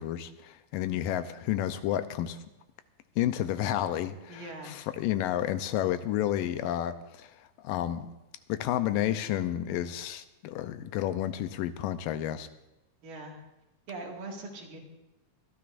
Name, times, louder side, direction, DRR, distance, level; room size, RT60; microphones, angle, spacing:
voice 1, 0.0-2.4 3.2-7.3 7.6-8.1 8.5-12.5, left 12 dB, 85° left, 11 dB, 2.3 m, -31 dB
voice 2, 4.3-4.8 13.0-13.4 13.9-14.8, right 2 dB, 80° right, -1 dB, 3.7 m, -41 dB
24.0 x 12.5 x 2.6 m, 0.95 s
omnidirectional pair, 3.9 m